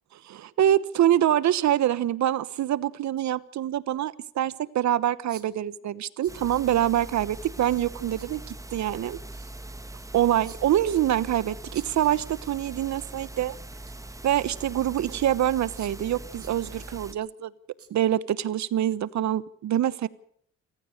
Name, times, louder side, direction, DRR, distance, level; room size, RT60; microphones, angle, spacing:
voice 1, 0.2-9.2 10.1-13.6 14.2-17.5 17.9-20.1, right 11 dB, 65° right, 18 dB, 1.1 m, -25 dB
sound 1, 1.4-1.5 3.3-3.4 4.0-4.1 5.3-5.7 6.2-7.0 8.2-8.4 10.4-10.9 11.7-12.5 12.8-13.1 13.4-14.1 14.8-14.9 15.7-16.2 16.4-17.3 17.8-17.9 18.3-18.4, right 7 dB, 50° right, 2.7 m, -51 dB
sound 2, 6.3-17.1, right 2 dB, 10° right, 1.8 m, -42 dB
28.0 x 15.0 x 6.5 m, 0.62 s
cardioid pair, 90°, 30 cm